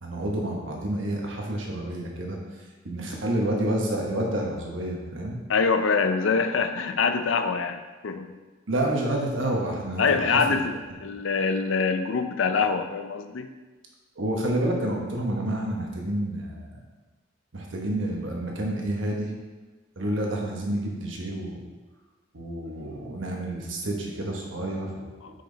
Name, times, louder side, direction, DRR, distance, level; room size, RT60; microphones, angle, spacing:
voice 1, 0.0-2.4 2.8-5.4 8.7-10.4 14.2-16.7 17.5-19.3 20.0-21.6 22.3-25.1, right 1 dB, 80° right, -1 dB, 1.2 m, -29 dB
voice 2, 5.5-8.4 10.0-10.7 11.0-13.5 25.2-25.4, left 5 dB, 85° left, 8 dB, 0.5 m, -24 dB
5.9 x 5.1 x 3.9 m, 1.3 s
head